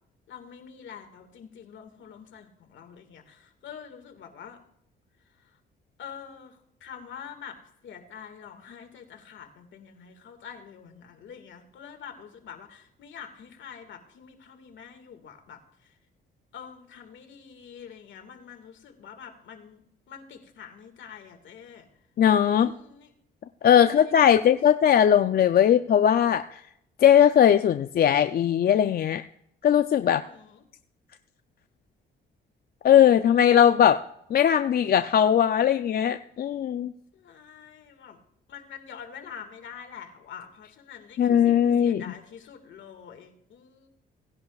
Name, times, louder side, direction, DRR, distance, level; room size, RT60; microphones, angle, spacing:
voice 1, 0.3-4.6 5.3-5.5 6.0-7.6 7.8-16.0 16.5-19.8 20.1-21.9 22.4-23.1 23.7-24.5 30.0-30.6 37.1-38.2 38.5-43.9, left 7 dB, 70° left, 6 dB, 1.9 m, -46 dB
voice 2, 22.2-22.7 23.6-26.6 27.0-29.2 29.6-30.2 32.8-34.0 34.3-36.9 41.2-42.0, left 9 dB, 50° left, 9 dB, 0.5 m, -19 dB
17.5 x 11.0 x 2.4 m, 0.72 s
cardioid pair, 90°, 20 cm